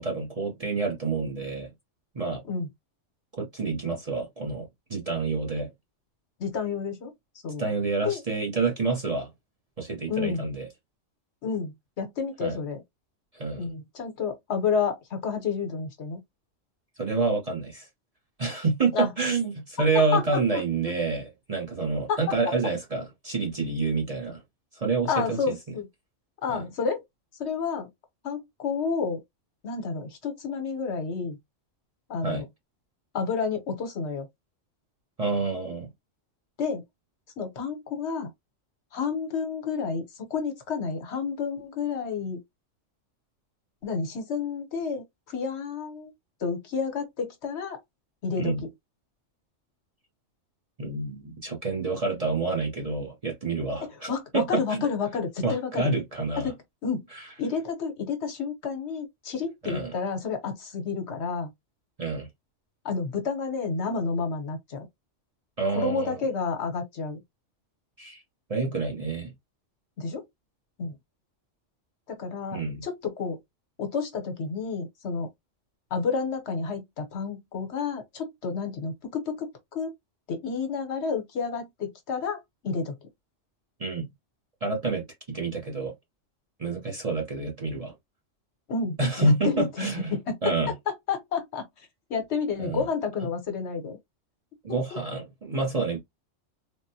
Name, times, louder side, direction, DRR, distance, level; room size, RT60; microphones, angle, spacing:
voice 1, 0.0-1.7 2.1-2.4 3.4-5.7 7.6-9.3 9.8-10.7 12.4-12.6 13.3-13.7 17.0-17.9 18.4-24.4 24.7-25.5 26.5-26.6 32.2-32.4 35.2-35.9 48.4-48.6 50.8-54.8 55.4-56.5 57.1-57.2 59.6-59.9 62.0-62.3 65.6-66.2 68.0-68.2 68.5-69.3 72.5-72.8 83.8-84.1 84.6-85.9 86.6-87.9 89.0-90.1 90.4-90.7 92.6-92.8 94.6-96.0, right 3 dB, 35° right, 0.7 m, -28 dB
voice 2, 6.4-7.1 7.4-7.7 8.0-8.2 10.1-10.5 11.4-12.8 13.6-16.2 18.9-19.1 20.1-20.6 22.1-22.3 25.1-25.9 26.4-27.0 27.4-27.9 28.2-29.2 29.6-31.4 32.1-32.4 33.1-34.3 36.6-36.8 37.4-38.3 38.9-42.4 43.8-46.1 46.4-47.8 48.2-48.7 54.1-55.9 56.4-57.1 57.4-61.5 62.8-64.9 65.7-67.2 70.0-70.2 70.8-71.0 72.1-73.4 73.8-75.3 75.9-79.9 80.3-82.9 88.7-90.5 90.9-91.7 92.1-94.0, left 5 dB, 65° left, 1.1 m, -30 dB
3.5 x 2.1 x 2.6 m
omnidirectional pair, 1.3 m